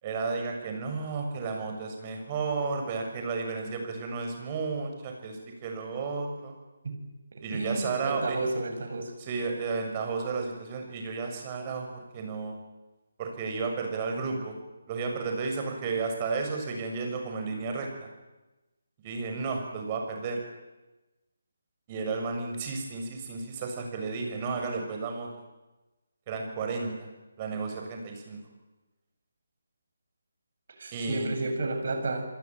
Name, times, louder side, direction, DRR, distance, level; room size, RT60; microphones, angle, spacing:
voice 1, 0.0-6.5 7.4-8.4 9.2-12.6 13.2-14.6 14.9-18.1 19.0-20.4 21.9-25.3 26.3-27.1 27.4-28.4 30.9-31.3, right 4 dB, 25° right, 3 dB, 6.9 m, -33 dB
voice 2, 7.3-9.1 30.8-32.2, right 2 dB, 55° right, 6 dB, 7.4 m, -32 dB
29.5 x 21.5 x 9.1 m, 1.1 s
figure-of-eight pair, 155°, 0 cm